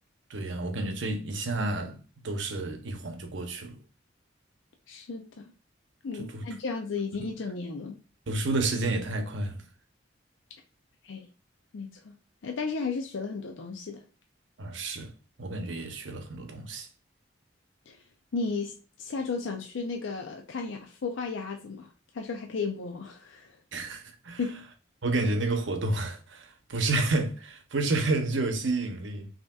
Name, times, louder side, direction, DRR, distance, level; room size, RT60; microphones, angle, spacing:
voice 1, 0.3-2.0 2.2-3.8 6.2-6.4 7.2-7.3 8.3-9.6 14.6-15.1 15.4-16.9 23.7-24.4 25.0-29.3, right 2 dB, 75° right, 0.7 m, -30 dB
voice 2, 4.9-5.5 6.0-8.0 11.0-11.3 11.7-12.1 12.4-14.0 17.9-18.0 18.3-23.6 24.4-24.7, left 4 dB, 80° left, 0.5 m, -34 dB
5.5 x 2.8 x 2.3 m
head